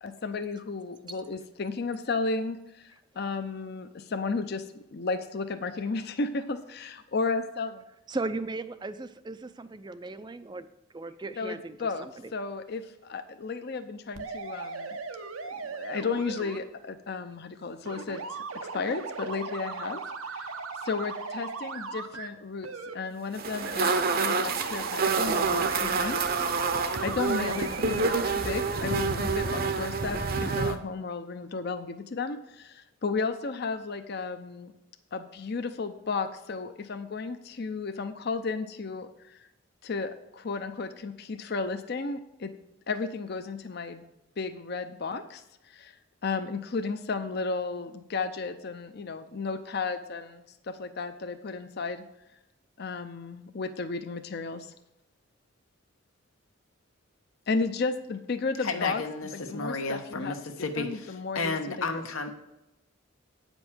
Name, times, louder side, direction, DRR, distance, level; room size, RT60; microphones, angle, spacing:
voice 1, 0.0-4.6 4.9-7.8 11.4-15.0 15.6-18.4 18.7-20.5 20.8-22.7 22.9-26.2 27.0-28.0 28.2-34.7 35.1-39.5 39.8-42.5 42.9-44.0 44.4-46.0 46.2-52.0 52.8-54.7 57.5-60.4 60.8-62.0, left 4 dB, 50° left, 8 dB, 0.6 m, -33 dB
voice 2, 8.1-10.7 10.9-12.1, right 3 dB, 20° right, 11 dB, 0.4 m, -36 dB
sound 1, 14.1-16.6 17.8-22.3 22.6-22.9 23.6-28.2, right 4 dB, 90° right, 0.9 m, -38 dB
sound 2, 23.3-30.7, right 4 dB, 45° right, 0.7 m, -28 dB
voice 3, 58.6-62.3, left 3 dB, 85° left, 6 dB, 1.2 m, -32 dB
8.9 x 5.3 x 6.2 m, 0.92 s
head